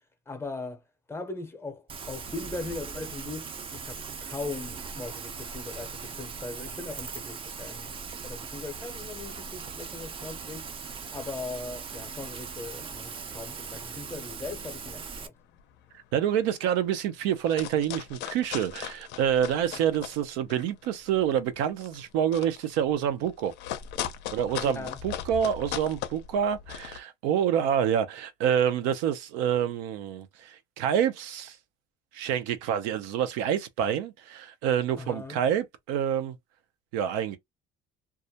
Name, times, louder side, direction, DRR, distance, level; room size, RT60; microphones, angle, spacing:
voice 1, 0.3-0.8 1.1-10.7 11.1-15.3 24.6-25.0 35.0-35.4, left 3 dB, 10° left, 0.6 m, -39 dB
Rain, 1.9-15.3, right 5 dB, 30° right, 0.4 m, -39 dB
sound 1, 15.5-15.8 16.2-16.3 16.5-16.9 17.3-20.2 20.5-27.0, left 10 dB, 65° left, 0.5 m, -38 dB
voice 2, 16.1-23.5 24.3-31.6 32.1-36.3 36.9-37.4, right 9 dB, 90° right, 0.5 m, -27 dB
2.3 x 2.0 x 2.7 m
cardioid pair, 120°, 19 cm